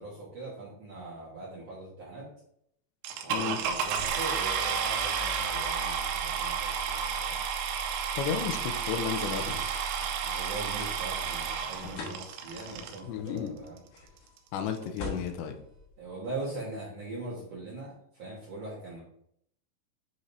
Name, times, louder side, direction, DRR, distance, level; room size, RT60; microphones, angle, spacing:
voice 1, 0.0-2.3 3.1-7.4 10.2-13.8 16.0-19.0, right 2 dB, 60° right, -7 dB, 1.6 m, -41 dB
sound 1, 3.0-13.0 13.8-13.9 14.4-14.5 14.7-15.0, right 7 dB, 80° right, 2.9 m, -31 dB
sound 2, 4.3-16.6, left 3 dB, 65° left, 2.2 m, -47 dB
voice 2, 8.2-9.6 13.1-13.6 14.5-15.6, left 8 dB, 85° left, 7 dB, 2.8 m, -33 dB
9.0 x 5.1 x 2.7 m, 0.73 s
omnidirectional pair, 5.2 m